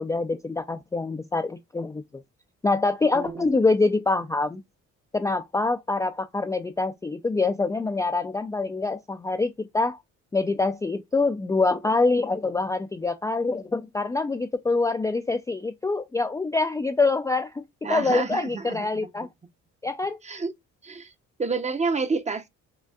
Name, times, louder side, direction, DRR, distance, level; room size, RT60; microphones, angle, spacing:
voice 1, 0.0-2.0 2.6-4.6 5.1-10.0 10.3-17.6 17.9-19.3 19.8-20.2, left 3 dB, 10° left, 0.3 m, -25 dB
voice 2, 3.1-3.5 17.8-18.9 20.2-20.5 20.8-21.1 21.4-22.5, right 4 dB, 25° right, 0.6 m, -29 dB
5.1 x 2.4 x 2.3 m
cardioid pair, 90°, 30 cm